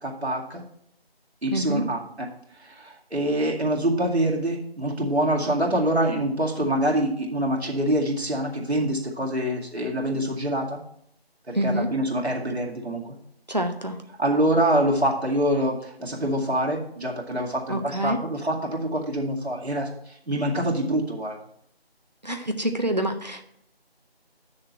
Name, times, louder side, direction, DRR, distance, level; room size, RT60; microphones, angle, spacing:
voice 1, 0.0-0.6 1.4-2.3 2.6-10.8 11.5-13.2 14.2-21.4, right 1 dB, 85° right, -2 dB, 2.2 m, -25 dB
voice 2, 1.5-1.9 11.5-11.9 13.5-14.0 17.7-18.2 22.2-23.4, right 1 dB, 45° right, 5 dB, 0.8 m, -26 dB
8.1 x 6.5 x 4.3 m, 0.70 s
figure-of-eight pair, 180°, 31 cm